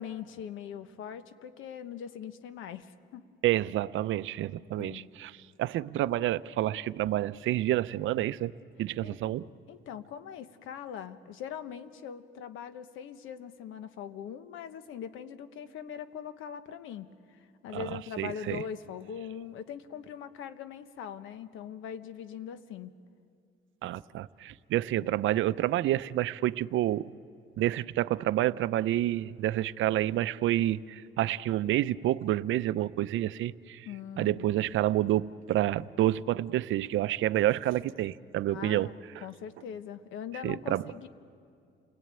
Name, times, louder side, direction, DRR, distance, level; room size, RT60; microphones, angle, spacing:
voice 1, 0.0-3.3 4.8-5.1 9.0-9.2 9.7-22.9 25.0-25.1 33.8-34.5 38.5-38.9 39.2-41.1, left 8 dB, 90° left, 1.1 m, -41 dB
voice 2, 3.4-5.3 5.6-8.5 8.8-9.5 17.7-17.9 18.2-18.6 23.8-27.1 27.6-33.9 34.2-39.3 40.4-40.8, right 14 dB, 80° right, 0.6 m, -29 dB
28.5 x 19.5 x 9.0 m
cardioid pair, 90°, 20 cm